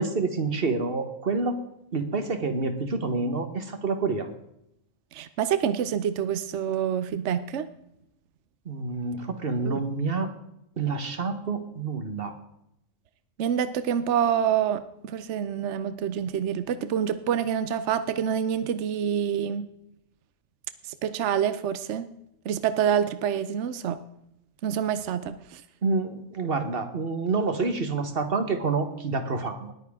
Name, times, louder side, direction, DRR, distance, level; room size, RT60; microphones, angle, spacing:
voice 1, 0.0-1.6 1.9-4.3 8.6-10.3 10.8-12.4 25.8-29.7, right 4 dB, 45° right, 8 dB, 1.5 m, -28 dB
voice 2, 5.1-7.7 9.6-9.8 13.4-19.7 21.0-22.1 22.5-24.0 24.6-25.6, right 8 dB, 65° right, 12 dB, 1.0 m, -27 dB
20.0 x 9.1 x 3.6 m, 0.80 s
omnidirectional pair, 1.3 m